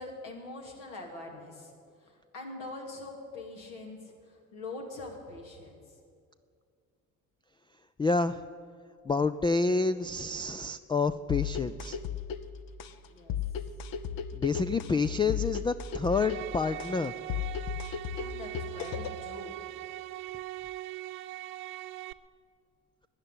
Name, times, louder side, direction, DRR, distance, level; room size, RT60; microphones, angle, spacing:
voice 1, 0.0-1.7 2.0-5.8 13.0-13.4 18.1-19.7, left 2 dB, 75° left, 0 dB, 2.7 m, -43 dB
voice 2, 8.0-8.4 9.1-12.0 14.3-17.1, left 4 dB, 10° left, 11 dB, 0.3 m, -28 dB
sound 1, 11.3-19.3, left 8 dB, 50° left, 0.9 m, -36 dB
sound 2, 16.1-22.1, right 16 dB, 75° right, 0.6 m, -41 dB
13.0 x 9.9 x 9.9 m, 2.3 s
hypercardioid pair, 50°, 44 cm